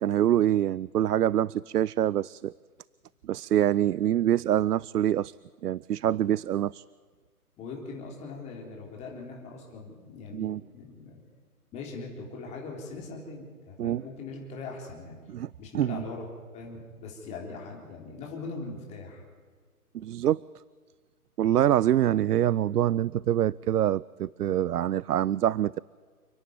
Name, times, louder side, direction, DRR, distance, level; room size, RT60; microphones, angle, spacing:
voice 1, 0.0-2.5 3.2-5.3 5.6-6.8 10.3-10.6 13.8-14.0 15.3-15.5 15.7-16.0 19.9-20.4 21.4-25.8, right 11 dB, 85° right, 23 dB, 0.5 m, -25 dB
voice 2, 7.6-11.2 11.7-15.2 15.6-16.3 16.5-19.2, left 3 dB, 15° left, 0 dB, 3.7 m, -41 dB
29.5 x 10.5 x 9.5 m, 1.5 s
hypercardioid pair, 150°, 46 cm